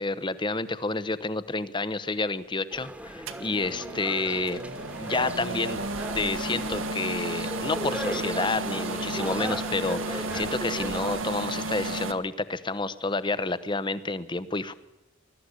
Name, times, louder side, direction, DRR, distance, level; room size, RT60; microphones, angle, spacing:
voice 1, 0.0-4.6 5.0-5.8 6.1-14.7, left 3 dB, 25° left, 15 dB, 0.9 m, -29 dB
sound 1, 2.7-11.2, right 1 dB, 5° right, 1.4 m, -37 dB
sound 2, 3.3-12.1, right 2 dB, 70° right, 1.5 m, -33 dB
21.0 x 13.0 x 9.9 m, 1.0 s
head